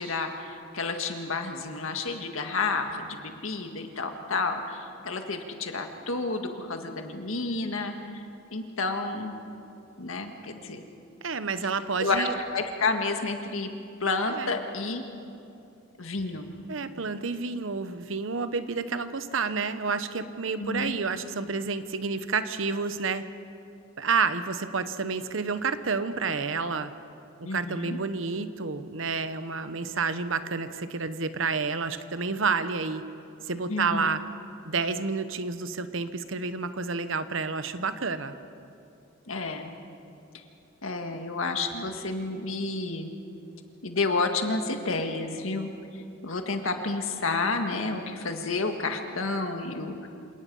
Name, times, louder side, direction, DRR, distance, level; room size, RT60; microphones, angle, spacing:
voice 1, 0.0-7.9 8.5-9.3 10.0-10.8 12.0-12.3 12.5-13.7 14.0-15.0 16.0-16.5 20.6-20.9 27.4-28.0 33.7-34.1 39.3-39.8 40.8-43.1 43.8-45.7 46.2-50.1, left 3 dB, 80° left, 5 dB, 1.8 m, -30 dB
voice 2, 11.2-12.4 14.3-14.5 16.7-23.2 24.0-26.9 27.4-33.0 33.4-34.2 34.6-38.3, right 4 dB, 70° right, 11 dB, 0.9 m, -29 dB
27.0 x 18.5 x 5.5 m, 2.6 s
head